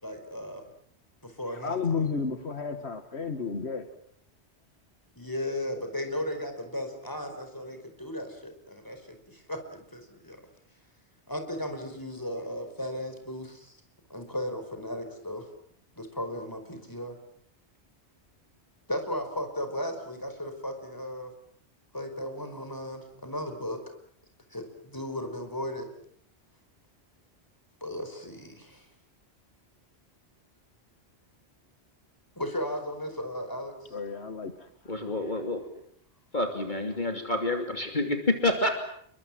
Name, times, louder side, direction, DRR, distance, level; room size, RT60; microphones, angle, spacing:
voice 1, 0.0-0.7 1.2-2.1 5.1-10.4 11.3-13.8 14.1-15.5 16.0-17.2 18.9-21.3 21.9-23.8 24.5-25.9 27.8-28.9 32.3-33.9 35.0-35.5, left 1 dB, 20° left, 6 dB, 5.0 m, -36 dB
voice 2, 1.5-3.9 33.9-35.1, left 5 dB, 70° left, 9 dB, 1.9 m, -32 dB
voice 3, 34.9-35.6 36.3-38.7, left 2 dB, 45° left, 4 dB, 2.9 m, -28 dB
28.5 x 23.5 x 7.6 m, 0.68 s
omnidirectional pair, 1.1 m